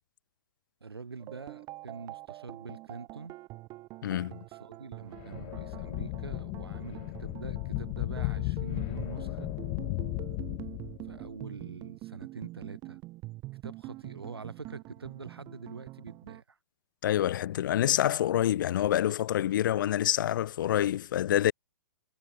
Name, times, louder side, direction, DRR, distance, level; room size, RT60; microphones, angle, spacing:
voice 1, 0.8-3.3 4.1-9.5 11.0-13.0 13.6-16.6, right 4 dB, 80° right, 3.6 m, -45 dB
sound 1, 1.2-16.4, right 19 dB, 30° right, 2.1 m, -45 dB
voice 2, 4.0-4.4 17.0-21.5, left 12 dB, 55° left, 0.4 m, -27 dB
sound 2, 5.1-11.3, left 40 dB or more, 35° left, 2.1 m, -35 dB
figure-of-eight pair, 120°, 13 cm